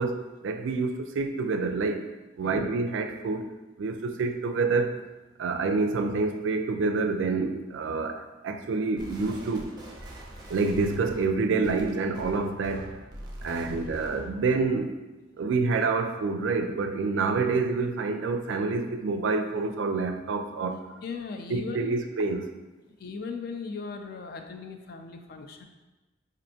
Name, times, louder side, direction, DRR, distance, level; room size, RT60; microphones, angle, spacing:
voice 1, 0.0-2.1 2.4-3.5 3.8-4.9 5.4-9.7 10.5-13.0 13.4-14.9 15.4-20.8 21.5-22.5, right 4 dB, 80° right, 0.4 m, -27 dB
sound 1, 9.0-14.4, right 1 dB, 25° right, 0.5 m, -44 dB
voice 2, 21.0-22.0 23.0-25.6, left 4 dB, 55° left, 0.3 m, -38 dB
4.3 x 2.5 x 2.7 m
head